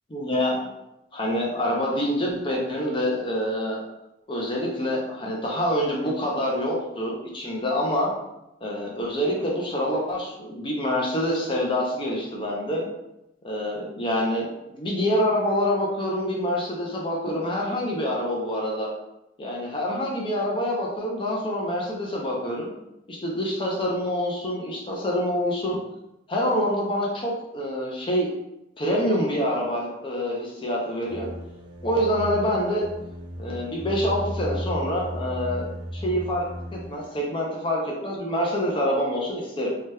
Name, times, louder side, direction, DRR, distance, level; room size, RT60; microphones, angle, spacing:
voice 1, 0.1-0.7 1.1-3.8 4.3-8.1 8.6-12.9 13.4-18.9 19.4-22.7 23.1-25.8 26.3-28.3 28.8-31.3 31.8-32.8 33.4-35.7 35.9-39.7, equal, 25° left, -3 dB, 0.5 m, -26 dB
sound 1, 31.1-37.1, equal, 25° right, 0.5 m, -35 dB
2.8 x 2.2 x 3.2 m, 0.89 s
head